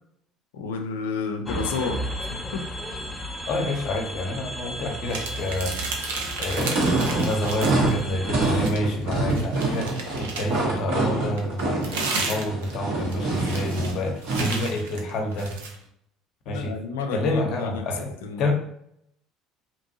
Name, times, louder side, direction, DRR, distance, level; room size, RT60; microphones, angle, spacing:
voice 1, 0.5-2.7 16.5-18.5, left 4 dB, 85° left, 5 dB, 0.4 m, -31 dB
sound 1, 1.4-8.5, equal, 15° left, 0.5 m, -34 dB
voice 2, 3.5-5.7 6.4-15.6 16.5-16.7 17.1-18.1 18.4-18.5, left 1 dB, 60° left, 3 dB, 0.7 m, -28 dB
sound 2, 5.1-8.0 8.3-10.7 11.4-15.8, right 4 dB, 85° right, 0.5 m, -33 dB
sound 3, 6.5-14.6, right 2 dB, 70° right, 1.3 m, -26 dB
2.9 x 2.6 x 2.7 m, 0.73 s
hypercardioid pair, 75°, 0 cm